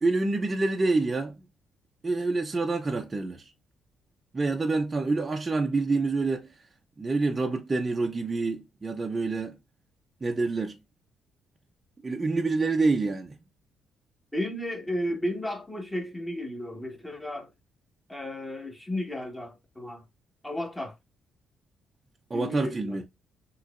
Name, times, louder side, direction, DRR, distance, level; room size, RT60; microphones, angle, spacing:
voice 1, 0.0-1.4 2.0-3.5 4.3-6.5 7.0-9.6 10.2-10.8 12.0-13.4 22.3-23.0, right 3 dB, 25° right, 0.7 m, -27 dB
voice 2, 14.3-17.5 18.1-20.0 20.4-20.9 22.3-23.1, left 1 dB, 15° left, 1.5 m, -33 dB
6.1 x 3.1 x 2.5 m
cardioid pair, 90°, 0 cm